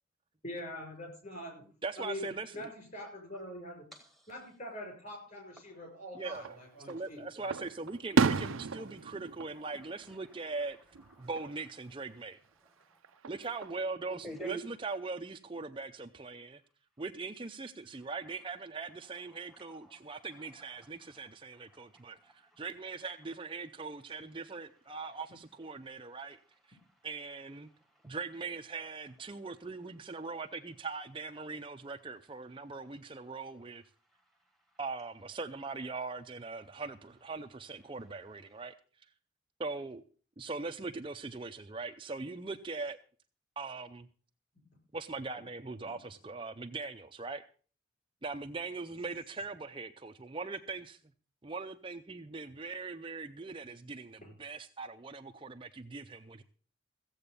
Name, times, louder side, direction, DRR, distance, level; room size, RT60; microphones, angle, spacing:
voice 1, 0.4-1.6 2.0-3.8 4.3-7.6 8.3-8.5 45.8-45.9 54.2-54.3, left 1 dB, 35° left, 3 dB, 6.5 m, -44 dB
voice 2, 1.8-2.7 6.1-6.5 6.8-10.8 11.2-12.4 13.3-16.6 17.0-26.4 26.7-26.8 27.0-27.7 28.0-33.8 34.8-38.7 39.6-40.0 40.4-43.0 43.6-44.1 44.9-47.4 48.2-51.0 51.4-56.4, right 3 dB, 25° right, 6 dB, 0.5 m, -41 dB
voice 3, 3.9-4.4 6.1-6.7 7.6-7.7 9.5-12.3 12.6-13.0 14.1-14.8 17.9-18.4 18.9-21.2 21.6-23.4 24.1-24.2 25.1-25.2 25.8-26.0 26.4-28.2 28.6-29.5 31.8-31.9 35.2-35.9 37.3-37.6 38.0-38.7, right 3 dB, ahead, 4 dB, 1.2 m, -53 dB
Fireworks, 6.3-7.0 7.5-10.6 10.9-11.5 13.0-13.9, right 5 dB, 70° right, 0.5 m, -33 dB
15.5 x 7.9 x 6.7 m, 0.40 s
head